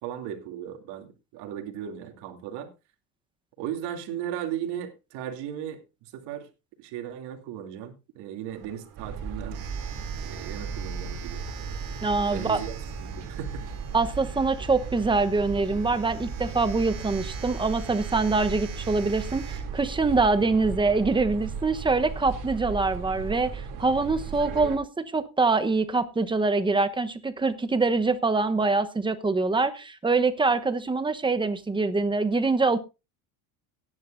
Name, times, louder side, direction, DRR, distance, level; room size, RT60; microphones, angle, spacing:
voice 1, 0.0-2.7 3.6-6.5 6.8-9.6 10.2-11.4 12.3-13.6, right 10 dB, 65° right, 4 dB, 2.9 m, -36 dB
Domestic sounds home sounds, 8.5-21.0, right 7 dB, 80° right, 3.5 m, -46 dB
sound 1, 9.0-24.8, right 5 dB, 45° right, 2.9 m, -36 dB
voice 2, 12.0-12.6 13.9-32.8, right 3 dB, 10° right, 10 dB, 1.0 m, -24 dB
17.5 x 10.5 x 2.6 m, 0.28 s
cardioid pair, 130°, 44 cm